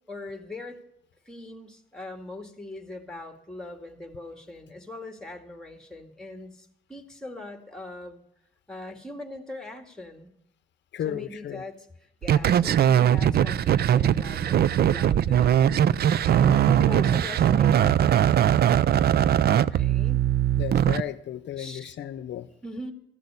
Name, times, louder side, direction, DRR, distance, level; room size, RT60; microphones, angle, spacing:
voice 1, 0.1-0.8 1.3-8.2 8.7-10.3 11.0-15.7 16.2-18.5 19.7-20.2 21.6-22.0 22.6-22.9, left 2 dB, 5° left, 5 dB, 2.0 m, -41 dB
voice 2, 10.9-11.6 20.6-22.5, left 10 dB, 65° left, 12 dB, 0.7 m, -34 dB
sound 1, 12.2-21.0, right 10 dB, 55° right, 0.5 m, -21 dB
14.5 x 6.5 x 9.8 m, 0.77 s
cardioid pair, 90°, 20 cm